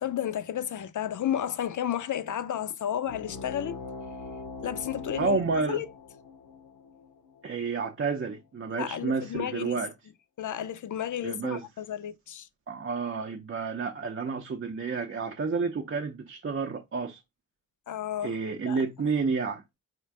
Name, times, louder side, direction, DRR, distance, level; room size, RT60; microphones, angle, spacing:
voice 1, 0.0-3.8 4.6-5.4 5.7-5.9 8.7-9.8 10.4-12.5 17.9-18.4 18.7-18.8, left 10 dB, 65° left, 0.5 m, -32 dB
sound 1, 3.0-8.2, left 4 dB, 85° left, 0.9 m, -42 dB
voice 2, 5.2-5.8 7.4-9.9 11.2-11.6 12.7-17.2 18.2-19.6, right 4 dB, 40° right, 0.5 m, -30 dB
4.4 x 2.5 x 4.5 m
wide cardioid pair, 145°, 33 cm